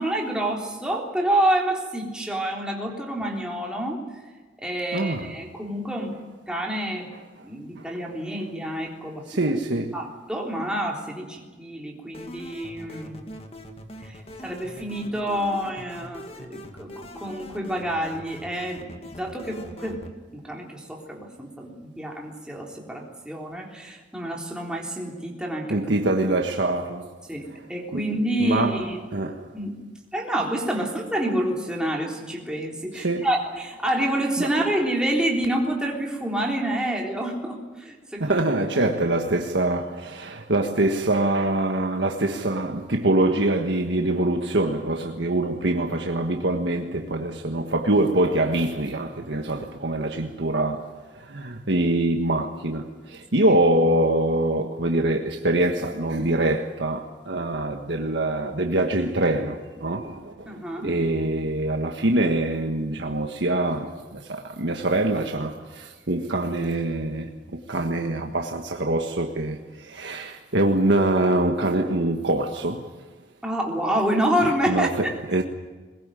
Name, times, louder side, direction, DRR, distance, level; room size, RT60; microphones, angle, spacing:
voice 1, 0.0-4.0 4.6-6.2 6.5-7.1 7.4-9.6 9.9-13.2 14.0-25.8 27.3-29.0 29.5-29.8 30.1-38.4 53.4-53.6 60.5-61.0 73.4-75.1, right 1 dB, 5° right, 3.6 m, -28 dB
voice 2, 4.9-5.3 9.3-10.0 25.7-27.1 27.9-28.0 28.4-28.8 29.1-29.5 32.9-33.3 34.4-34.5 38.2-50.9 51.1-67.3 67.7-72.9 74.7-75.4, right 1 dB, 75° right, 1.5 m, -24 dB
sound 1, 12.1-20.1, left 1 dB, 30° left, 2.0 m, -42 dB
21.5 x 21.5 x 9.2 m
head